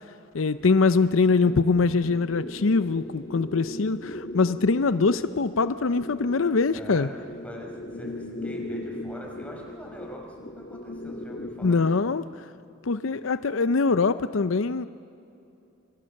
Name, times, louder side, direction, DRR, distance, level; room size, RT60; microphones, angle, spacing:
voice 1, 0.3-7.1 11.6-12.2 12.8-14.9, left 4 dB, 80° left, 13 dB, 0.6 m, -23 dB
sound 1, 0.5-12.0, left 1 dB, 45° left, 1.6 m, -38 dB
voice 2, 6.7-7.2 7.4-11.8 13.1-13.2, equal, 5° left, -1 dB, 5.4 m, -43 dB
28.0 x 26.0 x 6.5 m, 2.7 s
head